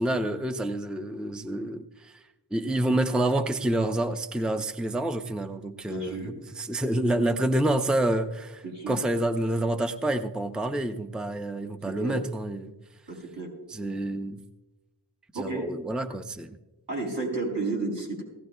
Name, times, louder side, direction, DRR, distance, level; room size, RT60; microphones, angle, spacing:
voice 1, 0.0-2.2 2.5-12.7 13.7-14.4 15.3-16.6, right 1 dB, ahead, 0.6 m, -28 dB
voice 2, 5.9-6.3 8.6-9.0 12.0-12.2 13.1-13.5 15.3-15.7 16.9-18.2, right 3 dB, 80° right, 5.3 m, -31 dB
20.0 x 16.0 x 2.2 m
wide cardioid pair, 50°, 42 cm